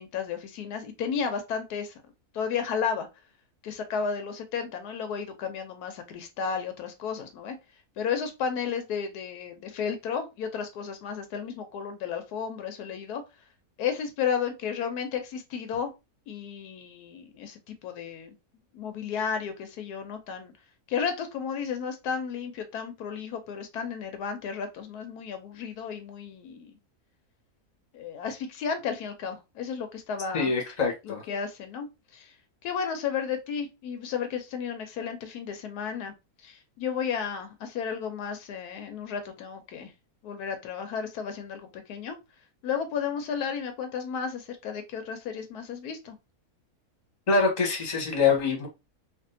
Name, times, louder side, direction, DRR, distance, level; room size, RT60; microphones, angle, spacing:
voice 1, 0.0-1.9 2.3-3.1 3.6-7.6 8.0-13.2 13.8-15.9 16.3-18.3 18.7-20.5 20.9-26.7 27.9-30.5 31.0-31.9 32.1-32.3 32.6-36.1 36.4-39.9 40.2-42.2 42.6-46.2, left 6 dB, 85° left, 1.2 m, -33 dB
voice 2, 30.3-31.2 47.3-48.7, left 4 dB, 30° left, 1.0 m, -24 dB
3.4 x 2.4 x 2.6 m
omnidirectional pair, 1.6 m